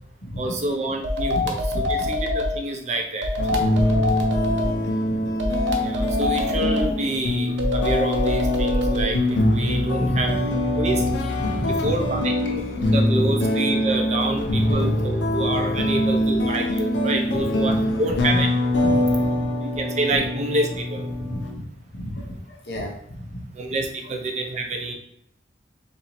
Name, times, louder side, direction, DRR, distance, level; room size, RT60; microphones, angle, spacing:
voice 1, 0.4-1.6 1.9-3.3 5.8-10.3 10.8-11.0 11.8-18.5 19.6-21.0 23.5-24.9, right 2 dB, 40° right, 3 dB, 0.5 m, -27 dB
sound 1, 1.0-2.6 3.2-4.7 5.4-6.9 7.6-9.1, left 2 dB, 85° right, 0.6 m, -24 dB
voice 2, 1.3-2.1 3.4-3.9 4.2-5.3 10.0-10.2 11.0-12.1 13.8-14.2 14.5-14.7 15.8-15.9 17.3-18.4 18.8-20.2 21.2-21.6 21.9-23.4 24.0-24.1, equal, 60° left, -1 dB, 0.9 m, -33 dB
sound 2, 3.4-21.5, left 1 dB, 85° left, 0.6 m, -24 dB
processed cello, 9.2-19.2, left 1 dB, 20° right, 1.1 m, -33 dB
4.2 x 2.6 x 3.0 m, 0.73 s
head